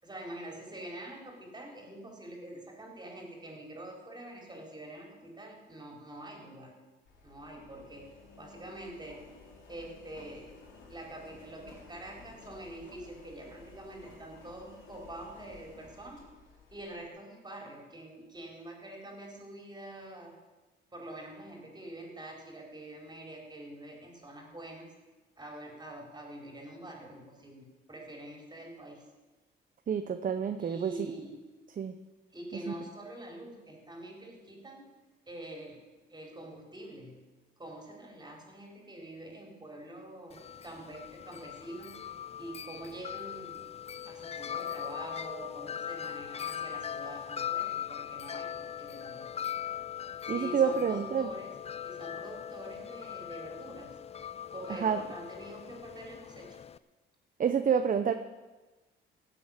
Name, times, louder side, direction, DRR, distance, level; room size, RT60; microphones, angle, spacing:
voice 1, 0.0-6.7 7.2-8.1 8.4-9.2 9.7-10.5 10.9-16.2 16.7-20.3 20.9-24.9 25.4-29.0 30.6-31.4 32.3-34.8 35.3-35.8 36.1-37.2 37.6-41.9 42.4-43.6 44.0-49.3 50.3-51.5 51.8-53.9 54.5-56.5, right 1 dB, 20° right, 0 dB, 4.5 m, -45 dB
Engine, 7.1-17.1, left 4 dB, 75° left, 3.7 m, -54 dB
voice 2, 29.9-31.1 31.8-31.9 32.7-32.8 50.3-51.3 54.7-55.0 57.4-58.1, right 7 dB, 45° right, 8 dB, 0.8 m, -28 dB
Wind chime, 40.3-56.8, left 9 dB, 30° left, 0.5 m, -40 dB
16.5 x 7.8 x 7.4 m, 1.2 s
cardioid pair, 90°, 20 cm